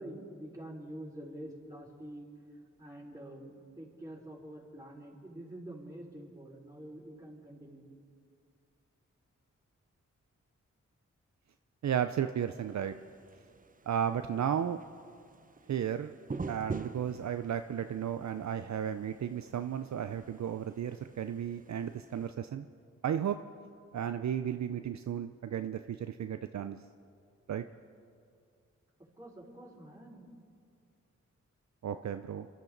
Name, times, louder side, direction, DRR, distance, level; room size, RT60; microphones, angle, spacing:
voice 1, 0.0-2.3 2.8-7.9 29.1-30.4, right 1 dB, 10° right, -4 dB, 4.8 m, -47 dB
voice 2, 11.8-12.9 13.9-14.8 15.7-16.1 16.5-22.7 23.0-23.4 23.9-26.8 27.5-27.6 31.8-32.5, right 9 dB, 65° right, 9 dB, 0.6 m, -34 dB
sound 1, 12.5-22.3, right 4 dB, 25° right, 0.7 m, -47 dB
25.5 x 12.0 x 4.0 m, 2.3 s
cardioid pair, 40°, 31 cm